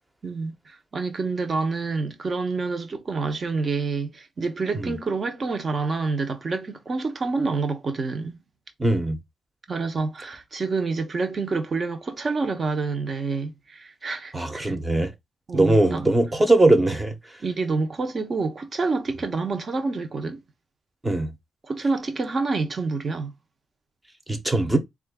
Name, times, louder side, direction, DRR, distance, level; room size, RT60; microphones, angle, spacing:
voice 1, 0.2-8.4 9.7-14.8 15.5-16.0 17.4-20.4 21.6-23.3, right 4 dB, 40° right, 0.8 m, -28 dB
voice 2, 8.8-9.2 14.3-15.1 15.5-17.1 21.0-21.3 24.3-24.8, right 2 dB, 20° right, 0.9 m, -20 dB
3.7 x 2.5 x 3.6 m
cardioid pair, 115°, 0 cm